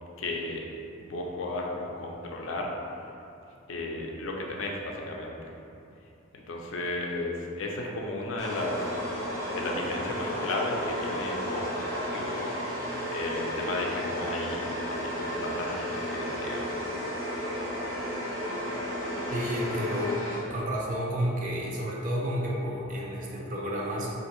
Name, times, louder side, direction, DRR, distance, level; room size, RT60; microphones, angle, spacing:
voice 1, 0.2-0.6 1.0-2.7 3.7-5.5 6.3-9.0 9.5-12.5 13.1-16.8, left 2 dB, 70° left, -1 dB, 0.4 m, -34 dB
sound 1, 8.4-20.7, equal, 80° right, 0.9 m, -33 dB
voice 2, 19.3-20.2 20.5-24.1, equal, 40° right, -4 dB, 0.5 m, -31 dB
3.5 x 2.5 x 3.0 m, 2.7 s
head